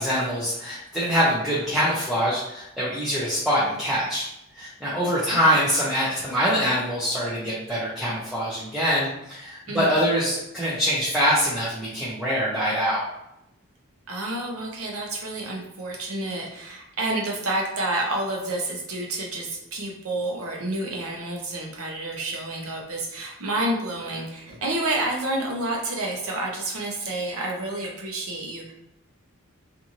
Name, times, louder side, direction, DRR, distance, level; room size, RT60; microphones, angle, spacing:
voice 1, 0.0-4.3 4.5-13.0, equal, ahead, -9 dB, 0.5 m, -24 dB
voice 2, 14.1-28.7, right 2 dB, 80° right, 0 dB, 0.7 m, -29 dB
2.6 x 2.5 x 2.8 m, 0.84 s
head